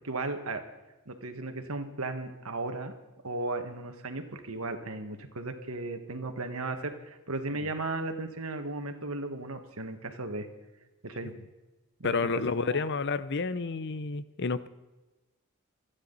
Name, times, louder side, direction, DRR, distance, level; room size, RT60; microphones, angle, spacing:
voice 1, 0.0-0.6 1.1-2.9 3.2-10.5 11.0-11.3 12.0-12.3 12.6-12.9, right 2 dB, 75° right, 7 dB, 1.8 m, -35 dB
voice 2, 12.0-14.7, left 4 dB, 55° left, 15 dB, 0.7 m, -30 dB
26.5 x 9.8 x 4.1 m, 1.1 s
head